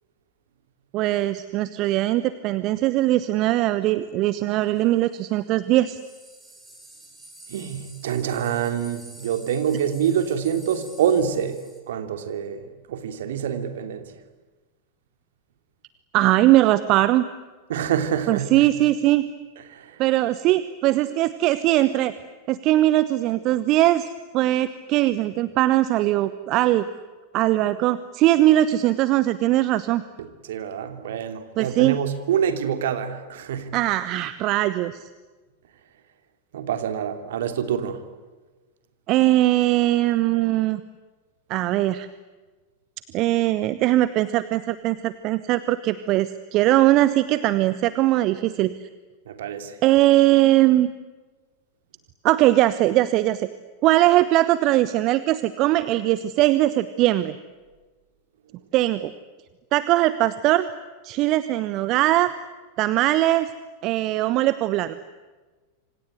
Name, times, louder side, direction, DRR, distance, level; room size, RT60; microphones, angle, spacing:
voice 1, 0.9-6.0 16.1-17.2 18.3-19.2 20.0-22.1 22.5-26.9 27.3-30.0 31.6-32.0 33.7-35.1 39.1-40.8 41.5-42.1 43.1-48.7 49.8-50.9 52.2-53.5 53.8-57.3 58.7-59.1 59.7-60.7 61.0-62.3 62.8-63.5 63.8-65.0, right 15 dB, 40° right, 14 dB, 1.1 m, -20 dB
sound 1, 4.8-5.1 6.0-11.8, right 1 dB, 10° right, 7.7 m, -48 dB
voice 2, 7.5-11.6 11.9-14.0 17.7-18.7 19.7-19.9 30.2-33.7 36.5-38.0 49.3-49.7, right 8 dB, 60° right, 8 dB, 2.9 m, -26 dB
27.0 x 26.0 x 8.1 m, 1.3 s
figure-of-eight pair, 90°, 0 cm